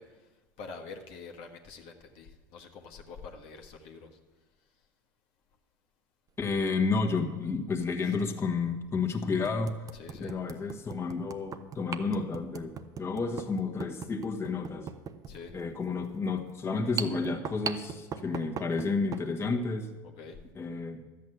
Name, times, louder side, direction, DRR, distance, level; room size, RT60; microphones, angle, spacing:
voice 1, 0.0-4.2 4.6-4.9 8.0-8.1 9.9-10.4 15.3-15.6 20.0-20.4, left 4 dB, 60° left, 3 dB, 1.5 m, -47 dB
voice 2, 6.4-9.8 10.2-12.7 13.0-14.9 15.5-19.9 20.5-21.0, left 4 dB, 25° left, 3 dB, 1.5 m, -31 dB
sound 1, 6.5-6.7 8.1-8.2 8.8-8.9 9.4-19.3, right 7 dB, 35° right, 0.9 m, -40 dB
12.0 x 8.4 x 7.8 m, 1.3 s
hypercardioid pair, 90°, 11 cm